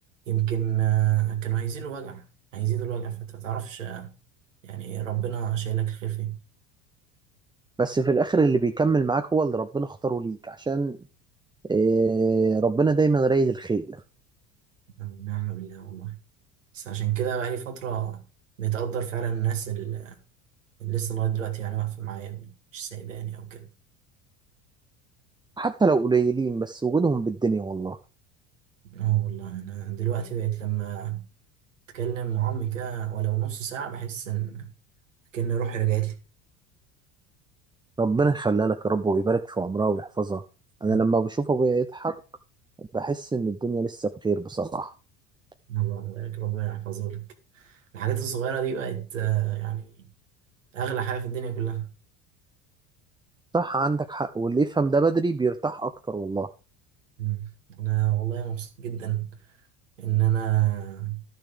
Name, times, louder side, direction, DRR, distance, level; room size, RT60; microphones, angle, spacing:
voice 1, 0.3-2.3 2.5-4.1 4.6-6.4 15.0-16.2 16.7-18.2 18.6-20.2 20.8-23.7 28.8-31.2 31.9-34.7 35.3-36.2 40.8-41.0 45.7-47.3 47.5-50.1 50.7-51.9 57.2-59.3 60.0-61.2, right 11 dB, 90° right, 2.0 m, -29 dB
voice 2, 7.8-11.0 11.7-14.0 25.6-28.0 38.0-40.4 40.8-42.2 42.9-44.9 53.5-56.5, right 4 dB, 10° right, 0.6 m, -24 dB
12.0 x 6.5 x 5.0 m
hypercardioid pair, 75°, 37 cm